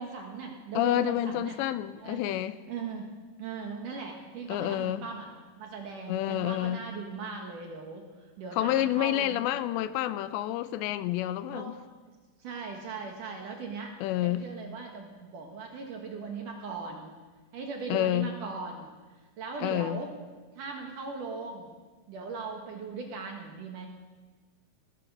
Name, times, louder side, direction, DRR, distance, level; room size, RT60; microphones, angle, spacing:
voice 1, 0.0-1.6 2.0-2.2 2.7-3.1 3.4-5.3 5.6-8.1 8.4-9.4 11.5-12.2 12.4-13.9 14.2-17.1 17.5-18.9 19.4-20.1 20.6-21.7 22.1-23.9, right 4 dB, 60° right, 2.4 m, -39 dB
voice 2, 0.8-2.6 4.5-5.1 6.1-6.8 8.6-11.8 14.0-14.5 17.9-18.3 19.6-20.0, left 13 dB, 80° left, 2.7 m, -29 dB
18.5 x 13.0 x 5.4 m
omnidirectional pair, 5.2 m